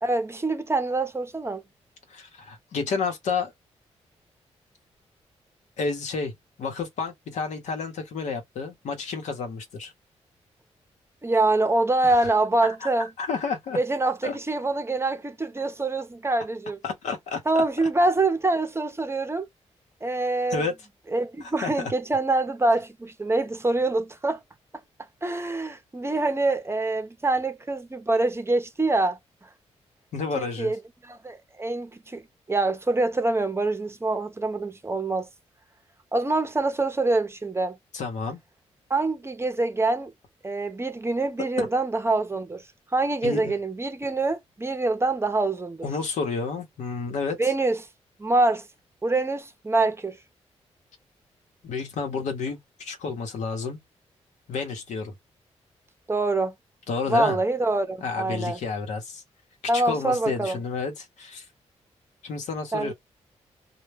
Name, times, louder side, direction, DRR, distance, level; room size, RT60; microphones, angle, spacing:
voice 1, 0.0-1.6 11.2-13.1 13.8-16.8 17.5-19.5 20.0-20.6 21.1-24.4 25.2-29.2 30.4-30.8 31.1-32.2 32.5-35.3 36.1-37.8 38.9-40.1 40.4-42.6 42.9-45.9 47.4-47.8 48.2-48.6 49.0-50.2 56.1-56.5 57.1-58.6 59.7-60.6 62.7-62.9, right 2 dB, 20° right, 0.6 m, -25 dB
voice 2, 2.1-3.5 5.8-6.3 6.6-9.9 12.2-12.3 12.6-12.9 13.2-13.8 14.2-14.4 16.8-17.4 17.8-17.9 20.5-20.7 21.4-21.9 30.1-30.7 37.9-38.4 41.6-41.7 43.2-43.5 45.8-47.4 51.6-53.8 54.5-55.1 56.9-57.4 58.0-59.2 59.7-61.4 62.2-62.9, left 4 dB, 80° left, 0.9 m, -30 dB
2.2 x 2.1 x 3.3 m
cardioid pair, 65°, 12 cm